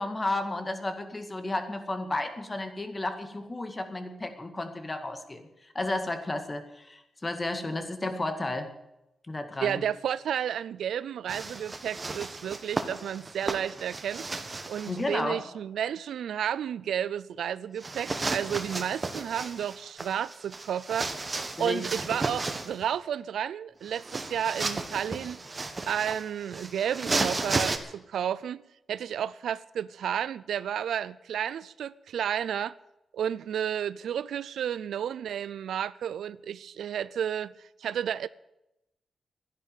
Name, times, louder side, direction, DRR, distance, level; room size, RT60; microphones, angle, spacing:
voice 1, 0.0-5.5 5.7-8.7 9.3-9.8 14.9-15.4 21.6-21.8, left 2 dB, 25° left, 2.0 m, -32 dB
voice 2, 9.6-14.3 14.7-21.1 21.6-25.4 25.9-28.6 28.9-32.7 33.1-37.5 37.8-38.3, right 9 dB, 90° right, 0.5 m, -32 dB
sound 1, 11.3-15.0 17.8-22.8 23.9-27.8, right 3 dB, 30° right, 1.6 m, -34 dB
12.5 x 10.5 x 9.2 m
cardioid pair, 100°, 0 cm